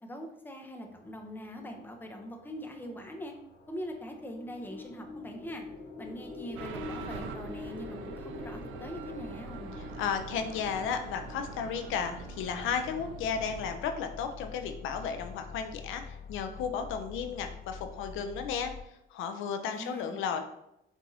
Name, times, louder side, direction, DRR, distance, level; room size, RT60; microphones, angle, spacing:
voice 1, 0.0-3.3 3.7-5.6 6.0-9.7 19.7-20.4, equal, 10° left, 2 dB, 0.6 m, -42 dB
sound 1, 0.9-18.8, left 6 dB, 55° left, 0.7 m, -49 dB
sound 2, 4.2-12.5, left 3 dB, 25° left, 1.3 m, -45 dB
sound 3, 6.6-13.8, right 7 dB, 85° right, 0.4 m, -44 dB
voice 2, 9.8-18.7 19.1-20.4, left 6 dB, 85° left, 6 dB, 0.4 m, -34 dB
4.6 x 2.6 x 2.6 m, 0.83 s
cardioid pair, 90°, 20 cm